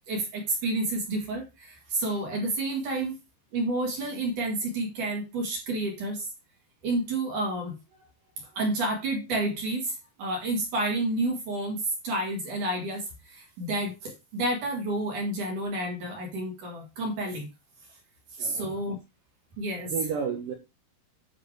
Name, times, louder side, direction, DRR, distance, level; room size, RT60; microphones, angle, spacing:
voice 1, 0.1-3.2 3.5-6.3 6.8-7.8 8.5-17.5 18.3-19.0 19.6-19.9, right 2 dB, 50° right, 2.7 m, -30 dB
voice 2, 18.4-18.8 19.8-20.5, right 6 dB, 80° right, 1.9 m, -32 dB
9.8 x 4.9 x 4.7 m
omnidirectional pair, 5.8 m